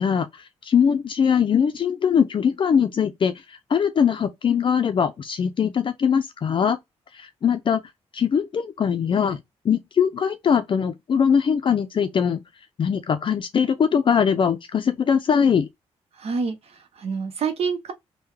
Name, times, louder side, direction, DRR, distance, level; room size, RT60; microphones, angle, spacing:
voice 1, 0.0-6.8 7.1-7.8 8.1-9.4 9.6-12.4 12.8-15.7, left 7 dB, 50° left, 0.4 m, -21 dB
voice 2, 16.2-17.9, right 5 dB, 65° right, 0.8 m, -27 dB
3.5 x 2.2 x 3.2 m
cardioid pair, 85°, 11 cm